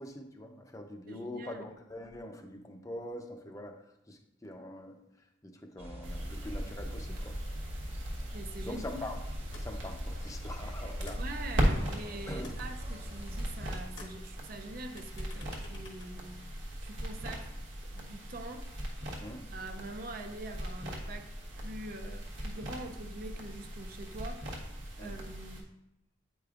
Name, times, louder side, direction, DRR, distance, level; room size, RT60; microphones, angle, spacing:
voice 1, 0.0-3.8 4.1-7.4 8.6-9.2 9.6-11.2 12.3-12.6 19.2-19.5 25.0-25.1, left 1 dB, 15° left, 0.6 m, -43 dB
voice 2, 1.1-1.6 8.3-9.0 11.2-16.4 16.8-17.6 17.9-18.7 19.5-25.7, right 2 dB, 50° right, 0.5 m, -44 dB
sound 1, 5.8-13.8, equal, 30° right, 1.1 m, -44 dB
sound 2, 6.0-25.6, equal, 80° right, 1.2 m, -38 dB
sound 3, 9.5-9.9 10.2-12.0 12.3-13.6 13.9-16.9, left 3 dB, 65° left, 1.1 m, -52 dB
8.6 x 5.0 x 2.4 m
head